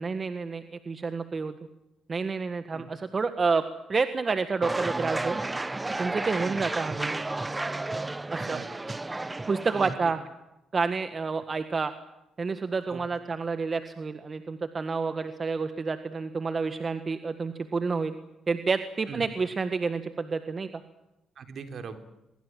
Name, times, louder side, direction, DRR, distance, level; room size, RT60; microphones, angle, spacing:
voice 1, 0.0-1.5 2.1-3.6 3.9-5.4 6.0-7.2 8.3-8.6 9.5-10.2 10.7-11.9 12.4-18.1 18.5-20.7, right 4 dB, 35° right, 10 dB, 1.6 m, -29 dB
sound 1, 4.6-9.9, right 2 dB, 15° right, 1.1 m, -32 dB
voice 2, 6.4-6.7 8.4-9.0 9.7-10.1 12.9-13.0 19.1-19.3 21.4-22.0, right 5 dB, 60° right, 8 dB, 3.8 m, -40 dB
24.0 x 22.5 x 7.7 m, 0.90 s
cardioid pair, 90°, 0 cm